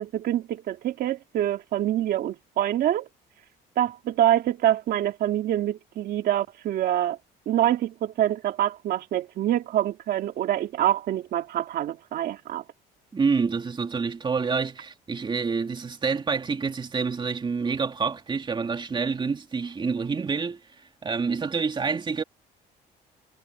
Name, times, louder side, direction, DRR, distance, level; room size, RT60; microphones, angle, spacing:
voice 1, 0.0-3.1 3.8-7.2 7.5-12.6, right 12 dB, 65° right, 2.6 m, -25 dB
voice 2, 13.1-20.6 21.0-22.2, right 5 dB, 30° right, 2.9 m, -27 dB
cardioid pair, 110°, 17 cm